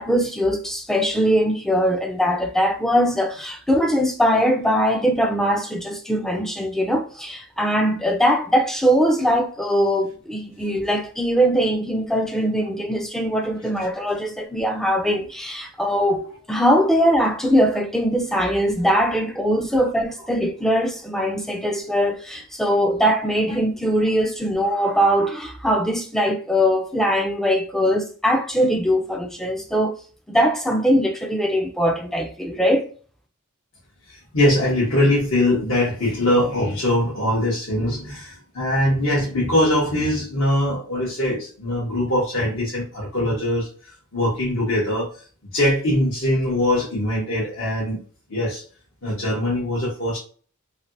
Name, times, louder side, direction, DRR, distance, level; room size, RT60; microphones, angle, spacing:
voice 1, 0.0-29.9 30.3-32.8, equal, ahead, 0.4 m, -21 dB
voice 2, 34.1-43.7 44.1-45.1 45.5-48.0 48.3-48.6 49.0-50.2, left 1 dB, 65° left, 1.4 m, -22 dB
3.2 x 2.8 x 2.6 m
head